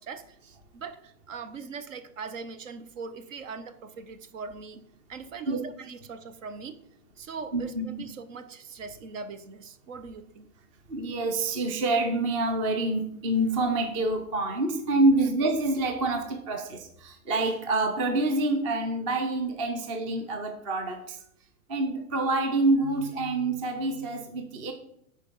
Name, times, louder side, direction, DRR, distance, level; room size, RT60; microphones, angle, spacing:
voice 1, 0.0-4.8 5.1-6.8 7.2-10.5 16.4-16.7, right 5 dB, 60° right, 11 dB, 1.0 m, -41 dB
voice 2, 7.5-7.9 10.9-21.2 21.7-24.7, right 2 dB, 25° right, 5 dB, 0.6 m, -27 dB
9.5 x 4.5 x 5.5 m, 0.74 s
supercardioid pair, 170°, 43 cm